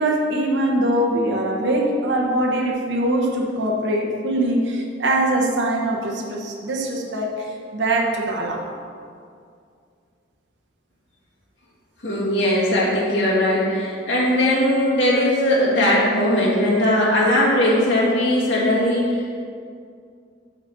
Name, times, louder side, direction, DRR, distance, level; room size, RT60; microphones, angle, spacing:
voice 1, 0.0-8.6, right 1 dB, 70° right, -1 dB, 1.0 m, -22 dB
voice 2, 12.0-19.4, left 1 dB, 75° left, -6 dB, 2.0 m, -19 dB
8.0 x 4.0 x 6.6 m, 2.3 s
head